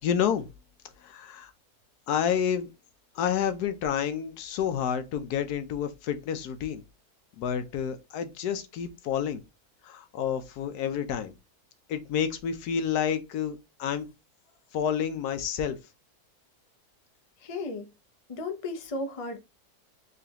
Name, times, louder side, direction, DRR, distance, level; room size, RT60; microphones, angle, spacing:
voice 1, 0.0-0.5 1.0-1.5 2.1-2.7 3.1-6.8 7.4-9.4 9.8-11.3 11.9-14.1 14.7-15.8, left 8 dB, 85° left, 1.2 m, -29 dB
voice 2, 17.4-17.9 18.3-19.4, left 2 dB, 35° left, 0.5 m, -34 dB
3.8 x 3.3 x 2.8 m
omnidirectional pair, 1.6 m